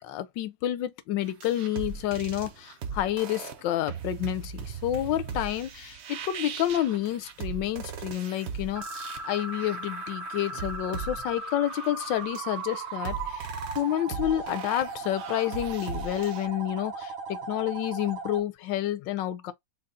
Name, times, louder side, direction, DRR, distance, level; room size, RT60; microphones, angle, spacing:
voice 1, 0.0-13.5 13.7-19.5, left 12 dB, 75° left, 1.3 m, -29 dB
sound 1, 1.3-16.5, right 6 dB, 70° right, 0.6 m, -39 dB
sound 2, 8.8-18.4, right 3 dB, 85° right, 2.0 m, -37 dB
4.1 x 2.0 x 3.7 m
omnidirectional pair, 2.1 m